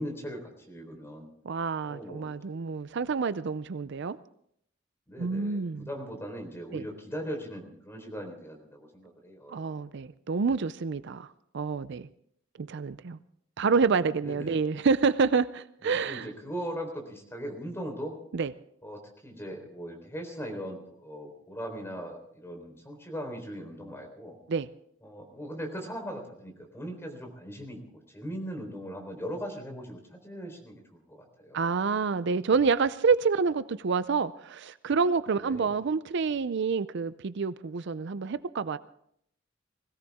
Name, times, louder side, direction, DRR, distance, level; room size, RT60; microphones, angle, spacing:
voice 1, 0.0-1.3 1.9-2.6 5.1-9.5 14.2-14.7 15.8-18.2 18.8-24.4 25.0-27.8 28.1-31.7 35.4-35.8, equal, 15° left, 3 dB, 3.9 m, -39 dB
voice 2, 1.4-4.2 5.2-5.9 6.7-6.8 9.5-12.1 12.6-13.2 13.6-16.3 18.3-18.5 24.5-24.7 31.5-38.8, right 5 dB, 60° right, 15 dB, 0.5 m, -28 dB
21.0 x 16.5 x 3.6 m, 0.69 s
head